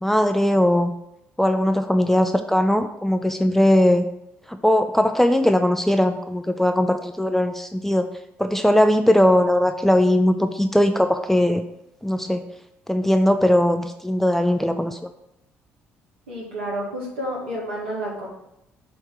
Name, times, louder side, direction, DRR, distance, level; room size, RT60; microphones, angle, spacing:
voice 1, 0.0-0.9 1.4-4.0 4.5-8.1 8.4-11.6 12.0-12.4 12.9-15.1, left 1 dB, 5° left, 8 dB, 0.4 m, -19 dB
voice 2, 16.3-18.3, equal, 85° right, -4 dB, 1.9 m, -30 dB
6.3 x 3.2 x 4.7 m, 0.84 s
hypercardioid pair, 55°, 6 cm